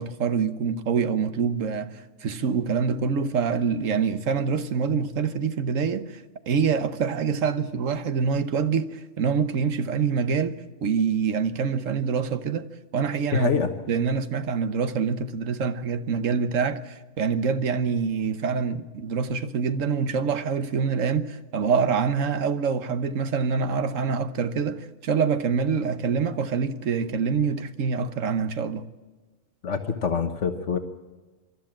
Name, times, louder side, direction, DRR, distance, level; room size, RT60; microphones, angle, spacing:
voice 1, 0.0-12.7 12.9-13.5 13.9-28.8, right 6 dB, 80° right, 1.4 m, -25 dB
voice 2, 13.3-13.7 29.6-30.8, left 5 dB, 70° left, 1.5 m, -25 dB
24.0 x 13.0 x 8.8 m
omnidirectional pair, 1.3 m